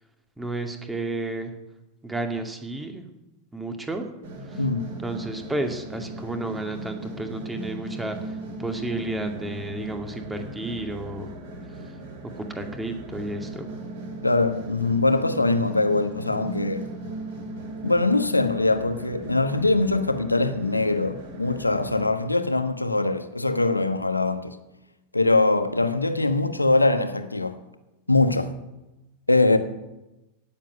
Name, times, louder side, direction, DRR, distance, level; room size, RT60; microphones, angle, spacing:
voice 1, 0.4-1.5 2.0-3.1 3.5-4.1 4.4-4.6 5.0-11.3 11.7-12.0 12.4-13.8, right 2 dB, 10° right, 2.2 m, -32 dB
sound 1, 4.2-22.0, right 2 dB, 55° right, 5.0 m, -38 dB
voice 2, 4.6-4.9 14.2-16.9 17.8-24.6 25.1-27.6 28.1-28.5 29.3-29.6, left 2 dB, 85° left, 1.2 m, -22 dB
17.0 x 7.5 x 9.2 m
figure-of-eight pair, 90°, 0 cm